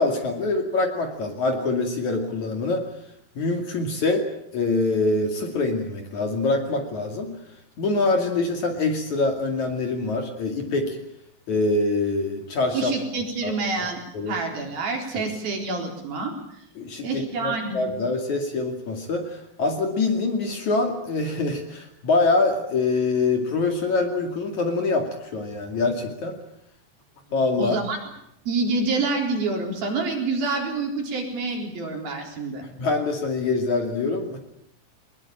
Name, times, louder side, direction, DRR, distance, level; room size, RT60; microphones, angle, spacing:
voice 1, 0.0-2.8 3.4-4.3 4.5-7.3 7.8-11.0 11.5-12.9 13.4-13.9 14.1-14.4 16.8-26.4 27.3-27.8 32.8-34.4, left 3 dB, 50° left, 4 dB, 3.4 m, -24 dB
voice 2, 12.7-14.0 14.3-16.3 17.0-17.8 27.6-28.0 28.5-32.7, right 3 dB, 60° right, 2 dB, 5.7 m, -27 dB
22.5 x 21.0 x 8.8 m, 0.77 s
omnidirectional pair, 4.9 m